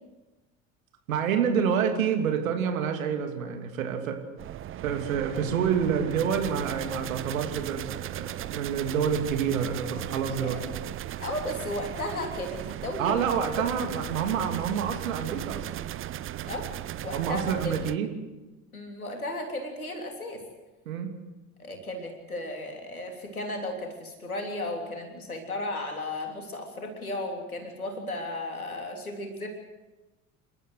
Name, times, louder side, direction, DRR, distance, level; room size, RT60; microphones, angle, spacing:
voice 1, 1.1-4.2 4.8-10.6 13.0-15.7 17.1-18.1 20.9-21.1, right 7 dB, 70° right, 5 dB, 2.8 m, -28 dB
sound 1, 4.4-18.0, right 12 dB, 30° right, 0.7 m, -37 dB
voice 2, 11.2-13.2 14.2-14.3 16.4-16.7 17.0-17.8 18.7-20.4 21.6-29.5, left 1 dB, 85° left, 3 dB, 3.4 m, -35 dB
29.0 x 13.0 x 8.0 m, 1.1 s
figure-of-eight pair, 65°, 42 cm